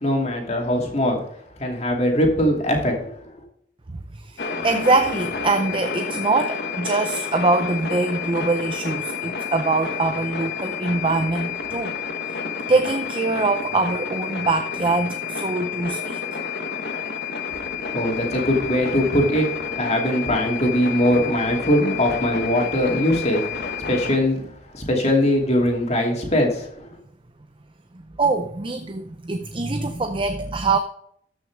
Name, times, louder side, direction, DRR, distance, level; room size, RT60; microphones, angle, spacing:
voice 1, 0.0-1.2 1.6-3.1 17.9-19.5 19.8-24.4 24.7-26.7, left 1 dB, 40° left, 1 dB, 2.6 m, -21 dB
voice 2, 3.9-12.0 12.3-12.4 12.7-16.4 28.2-30.8, right 3 dB, 30° right, 8 dB, 0.5 m, -23 dB
sound 1, 4.4-24.2, left 6 dB, 65° left, 1.2 m, -30 dB
13.5 x 6.2 x 3.5 m, 0.71 s
head